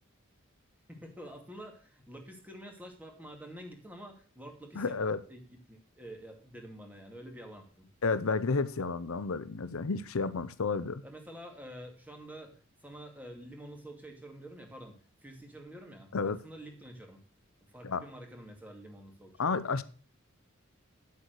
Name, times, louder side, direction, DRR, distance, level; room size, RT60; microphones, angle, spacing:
voice 1, 0.9-7.9 11.0-12.5 12.8-17.2 17.7-19.6, right 1 dB, 5° right, 2.4 m, -48 dB
voice 2, 4.8-5.2 8.0-11.0 16.1-16.4 17.8-18.0 19.4-19.8, left 4 dB, 75° left, 0.7 m, -31 dB
9.6 x 8.3 x 6.5 m
head